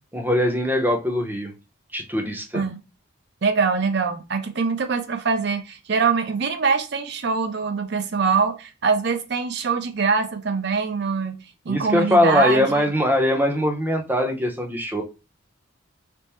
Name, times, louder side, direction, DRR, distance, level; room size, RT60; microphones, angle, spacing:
voice 1, 0.1-1.5 1.9-2.6 11.7-15.0, left 1 dB, 10° right, 0.6 m, -21 dB
voice 2, 3.4-12.9, right 5 dB, 55° right, 0.5 m, -23 dB
3.4 x 2.0 x 4.3 m
head